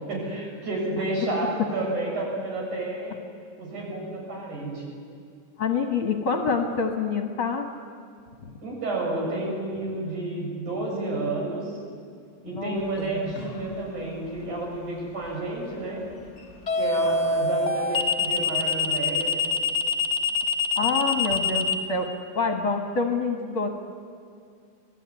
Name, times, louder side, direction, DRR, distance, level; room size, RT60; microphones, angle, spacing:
voice 1, 0.1-3.2 3.6-4.8 8.6-11.8 12.4-16.0 16.8-19.4, right 2 dB, 65° right, -2 dB, 8.5 m, -30 dB
voice 2, 5.6-7.7 8.4-8.5 12.5-12.8 13.1-13.3 20.8-22.1 22.4-23.7, left 4 dB, 50° left, 4 dB, 1.9 m, -26 dB
sound 1, 13.4-13.7 16.7-21.7, left 4 dB, 65° left, 0.7 m, -24 dB
26.5 x 19.5 x 9.7 m, 2.3 s
omnidirectional pair, 3.7 m